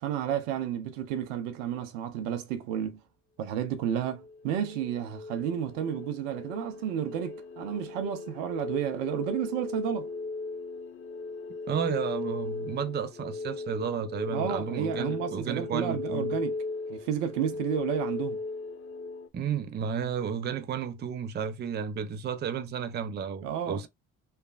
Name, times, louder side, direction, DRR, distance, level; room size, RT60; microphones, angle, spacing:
voice 1, 0.0-3.0 3.4-10.1 14.3-16.6 16.9-18.4 23.4-23.9, right 9 dB, 75° right, 0.7 m, -31 dB
sound 1, 4.1-19.3, left 3 dB, 35° left, 0.8 m, -37 dB
voice 2, 11.7-16.3 19.3-23.9, right 7 dB, 25° right, 0.5 m, -32 dB
3.2 x 2.1 x 2.4 m
hypercardioid pair, 55°, 38 cm